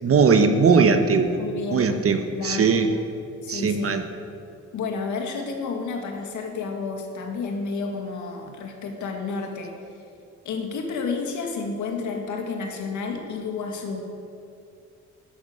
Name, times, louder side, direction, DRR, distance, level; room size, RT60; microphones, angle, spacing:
voice 1, 0.0-1.4 1.7-2.9 3.5-4.0, right 5 dB, 50° right, 7 dB, 1.2 m, -19 dB
voice 2, 1.4-2.0 2.3-2.8 3.4-4.0 4.7-10.0 10.4-14.1, left 4 dB, 75° left, 3 dB, 2.1 m, -31 dB
12.0 x 10.5 x 6.7 m, 2.4 s
cardioid pair, 90°, 30 cm